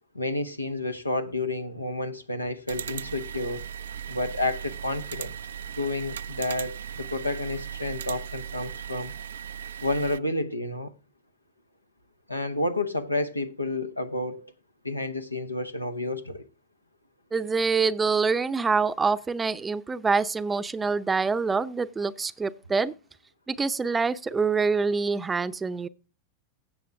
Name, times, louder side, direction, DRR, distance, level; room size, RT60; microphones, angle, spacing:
voice 1, 0.1-3.7 4.1-5.4 5.8-9.1 9.8-10.9 12.3-14.5 14.8-16.5, left 2 dB, 85° left, 1.0 m, -30 dB
sound 1, 2.7-10.2, right 8 dB, 65° right, 0.4 m, -37 dB
voice 2, 17.3-22.9 23.5-25.9, right 4 dB, 15° right, 0.6 m, -25 dB
16.0 x 7.1 x 3.4 m
figure-of-eight pair, 90°, 0 cm